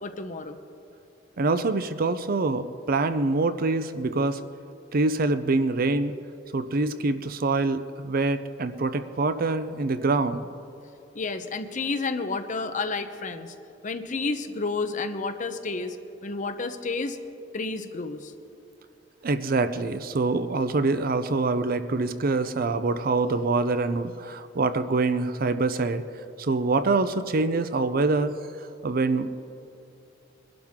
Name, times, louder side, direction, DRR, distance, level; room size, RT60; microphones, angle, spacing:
voice 1, 0.0-0.6 11.1-13.5 13.8-16.0 16.2-17.2 17.5-18.3, left 3 dB, 40° left, 8 dB, 0.8 m, -30 dB
voice 2, 1.4-4.4 4.9-6.1 6.5-10.5 19.2-26.0 26.4-28.3 28.6-29.3, right 3 dB, 50° right, 12 dB, 0.5 m, -25 dB
22.0 x 12.0 x 3.7 m, 2.7 s
head